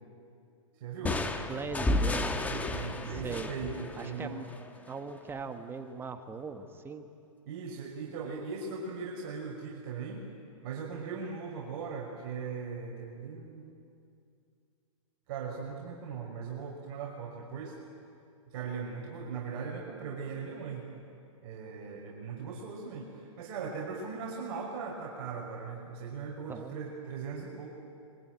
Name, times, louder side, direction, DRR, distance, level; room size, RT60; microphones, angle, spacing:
voice 1, 0.8-1.2 2.5-4.4 7.5-10.2 10.6-13.8 15.3-17.8 18.5-20.9 21.4-27.7, right 5 dB, 45° right, -2 dB, 5.6 m, -39 dB
sound 1, 1.0-4.7, left 2 dB, 10° left, 1.4 m, -32 dB
voice 2, 1.5-2.5 3.1-3.5 4.0-4.5 4.9-7.1 26.5-26.8, right 5 dB, 10° right, 7 dB, 1.3 m, -40 dB
25.5 x 24.0 x 9.3 m, 2.5 s
hypercardioid pair, 135°, 18 cm